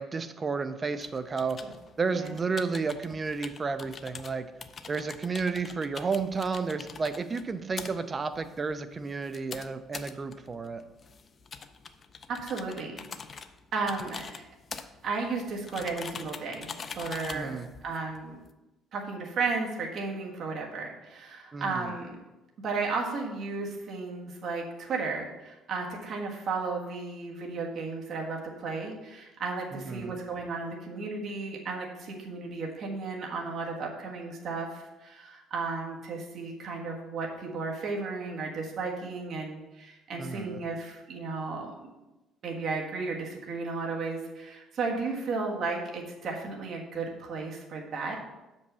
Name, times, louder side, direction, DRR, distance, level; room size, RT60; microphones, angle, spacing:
voice 1, 0.0-1.6 2.0-4.5 4.9-10.8 17.2-17.7 21.5-21.9 29.7-30.2 40.2-40.6, right 4 dB, 25° right, 11 dB, 0.5 m, -32 dB
sound 1, 1.0-18.5, left 5 dB, 30° left, 0.5 m, -45 dB
voice 2, 12.3-13.0 13.7-14.4 15.0-18.4 18.9-22.2 22.6-41.7 42.4-48.2, right 4 dB, 45° right, -1 dB, 1.5 m, -34 dB
6.6 x 5.4 x 6.8 m, 1.0 s
cardioid pair, 150°, 0 cm